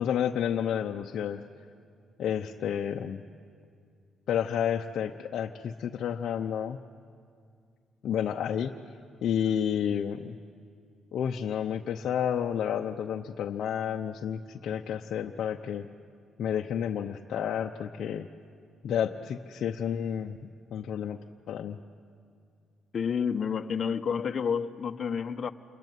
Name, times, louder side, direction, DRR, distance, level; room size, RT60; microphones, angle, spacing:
voice 1, 0.0-1.4 2.2-3.2 4.3-6.8 8.0-8.7 9.2-10.4 11.1-15.9 16.4-18.3 18.8-20.4 20.7-21.2 21.5-21.8, left 9 dB, 70° left, 0.8 m, -30 dB
voice 2, 22.9-25.5, left 6 dB, 45° left, 1.0 m, -29 dB
28.0 x 21.5 x 9.3 m
cardioid pair, 90°, 0 cm